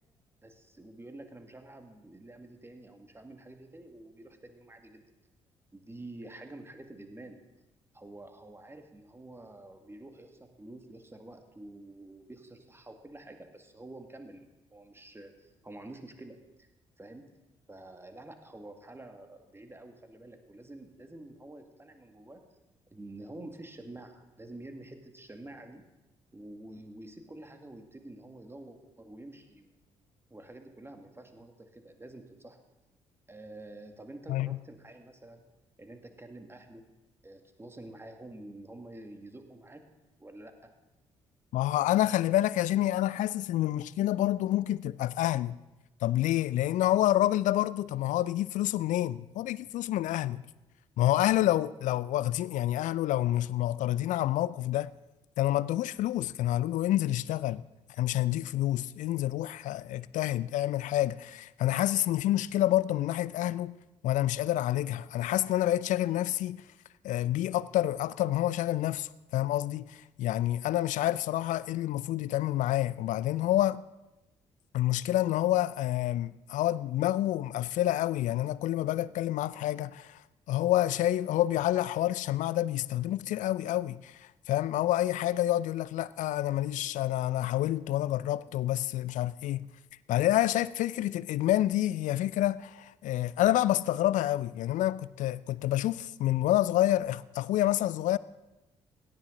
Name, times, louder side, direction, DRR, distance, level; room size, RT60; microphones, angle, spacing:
voice 1, 0.4-5.1 5.7-7.4 7.9-16.7 17.0-17.3 17.7-22.4 22.9-25.8 26.3-29.8 30.3-32.6 33.3-35.4 35.8-36.8 37.2-39.8 40.2-40.7, right 2 dB, 15° right, 2.0 m, -48 dB
voice 2, 41.5-45.6 46.0-50.4 51.0-54.9 55.4-57.6 58.0-63.8 64.0-66.6 67.0-73.8 74.7-80.2 80.5-84.2 84.5-89.7 90.1-98.2, left 14 dB, 60° left, 0.5 m, -28 dB
17.0 x 12.5 x 3.9 m
figure-of-eight pair, 45°, 15 cm